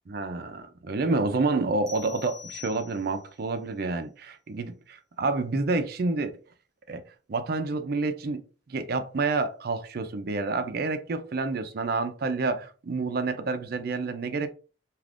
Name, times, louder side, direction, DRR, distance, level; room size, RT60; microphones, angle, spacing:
voice 1, 0.1-6.3 6.9-7.0 7.3-8.4 8.7-14.5, right 3 dB, 55° right, 0.4 m, -28 dB
sound 1, 1.9-3.4, left 7 dB, ahead, 0.6 m, -45 dB
2.4 x 2.4 x 3.3 m
head